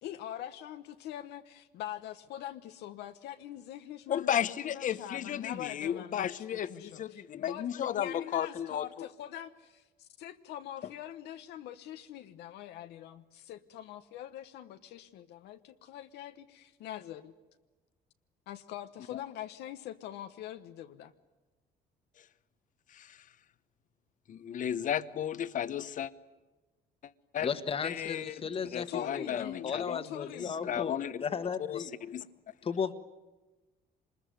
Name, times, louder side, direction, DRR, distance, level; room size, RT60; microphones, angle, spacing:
voice 1, 0.0-4.4 4.7-17.3 18.5-21.1 28.4-28.6 28.9-29.7 30.0-30.8, left 11 dB, 80° left, 7 dB, 1.1 m, -43 dB
voice 2, 4.1-8.9 19.1-19.2 22.9-23.2 24.3-26.1 27.3-27.5 27.8-28.3 28.7-30.0 30.4-31.2 31.7-32.2, left 10 dB, 50° left, 14 dB, 1.0 m, -34 dB
voice 3, 27.4-31.9 32.6-32.9, left 6 dB, 35° left, 10 dB, 1.5 m, -35 dB
25.0 x 21.0 x 9.4 m, 1.2 s
cardioid pair, 110°, 17 cm